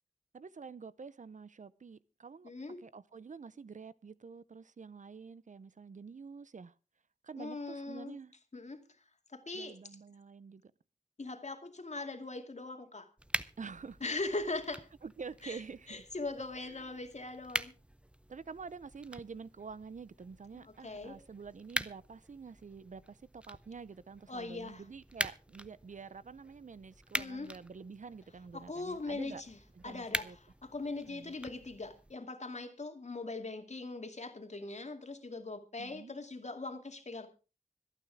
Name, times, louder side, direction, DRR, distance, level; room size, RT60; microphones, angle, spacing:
voice 1, 0.3-2.5 2.8-6.7 7.2-8.3 9.5-10.6 13.6-14.0 15.0-16.1 16.8-16.9 18.3-29.4 29.8-30.4 31.1-31.3 35.8-36.1, right 5 dB, 70° right, 0.6 m, -48 dB
voice 2, 2.4-2.8 7.4-8.2 8.5-8.8 9.3-9.8 11.2-13.1 14.0-14.9 15.4-15.6 15.9-17.7 20.5-21.2 24.3-24.8 27.1-27.5 28.5-29.6 29.8-37.3, left 3 dB, 60° left, 2.4 m, -40 dB
sound 1, 13.2-32.2, right 1 dB, 10° right, 0.7 m, -44 dB
25.5 x 9.2 x 3.5 m
wide cardioid pair, 65°, 13 cm